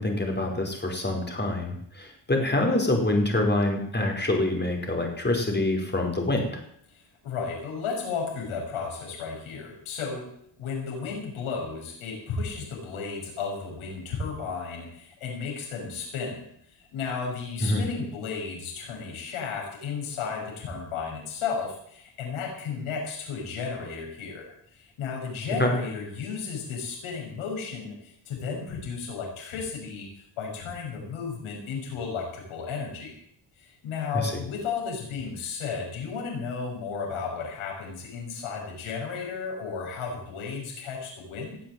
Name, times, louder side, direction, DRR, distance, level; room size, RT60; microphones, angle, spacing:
voice 1, 0.0-6.6 17.6-17.8 25.6-25.7, left 1 dB, 20° left, 2 dB, 5.0 m, -26 dB
voice 2, 7.2-10.3 10.6-16.5 16.9-24.5 24.8-30.1 30.4-33.1 33.6-41.6, left 5 dB, 90° left, -1 dB, 6.7 m, -34 dB
18.5 x 7.8 x 7.8 m, 0.69 s
cardioid pair, 85°, 48 cm